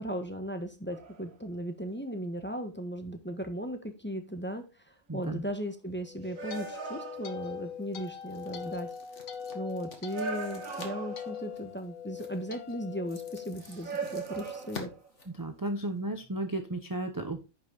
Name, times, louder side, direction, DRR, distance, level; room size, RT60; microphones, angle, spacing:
voice 1, 0.0-8.9 9.2-9.3 9.5-14.9, equal, 10° left, 6 dB, 1.2 m, -37 dB
sound 1, 0.9-1.3 5.5-5.6 6.4-7.7 8.6-8.7 10.1-11.5 13.6-15.1, right 4 dB, 80° right, 1.8 m, -39 dB
voice 2, 5.1-5.4 15.4-17.4, right 1 dB, 20° right, 6 dB, 0.8 m, -34 dB
sound 2, 6.0-14.3, left 7 dB, 90° left, 1.5 m, -42 dB
sound 3, 7.0-16.0, left 4 dB, 60° left, 2.2 m, -51 dB
10.5 x 6.1 x 3.9 m, 0.29 s
omnidirectional pair, 1.4 m